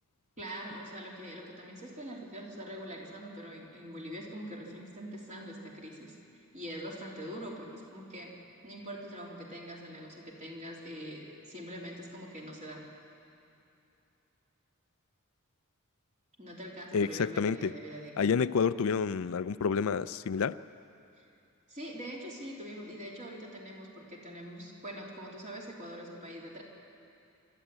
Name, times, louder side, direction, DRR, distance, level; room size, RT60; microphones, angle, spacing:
voice 1, 0.4-6.1 6.5-8.4 8.6-12.9 16.4-18.3 21.2-21.3 21.7-26.6, equal, 35° right, -2 dB, 3.4 m, -43 dB
voice 2, 16.9-17.7 18.2-20.6, left 6 dB, 70° left, 15 dB, 0.4 m, -29 dB
26.0 x 12.5 x 9.0 m, 2.8 s
head